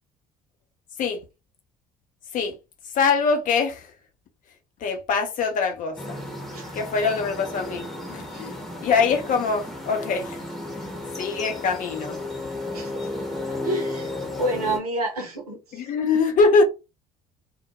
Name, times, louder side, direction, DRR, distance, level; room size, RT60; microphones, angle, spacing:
voice 1, 2.9-3.9 4.8-6.2 6.7-8.5 8.8-10.4 11.2-12.2 15.7-16.6, left 4 dB, 45° left, 0.7 m, -23 dB
sound 1, 6.0-14.8, left 2 dB, ahead, 0.9 m, -33 dB
voice 2, 6.5-6.8 8.3-8.6 12.7-13.1 13.6-15.9, right 1 dB, 85° right, 0.6 m, -30 dB
2.1 x 2.1 x 2.8 m
figure-of-eight pair, 55°, 19 cm